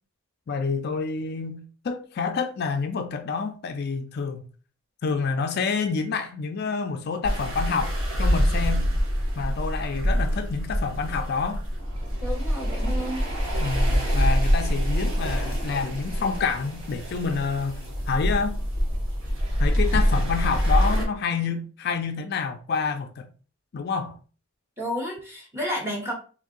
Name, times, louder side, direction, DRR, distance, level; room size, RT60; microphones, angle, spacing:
voice 1, 0.5-4.4 5.0-8.9 9.4-11.6 13.6-18.6 19.6-23.3 23.7-24.1, left 5 dB, 50° left, 0.3 m, -28 dB
sound 1, 7.2-21.0, equal, 75° right, 1.4 m, -25 dB
voice 2, 12.2-13.2 24.8-26.1, equal, 10° right, 1.0 m, -31 dB
3.4 x 2.6 x 3.7 m
head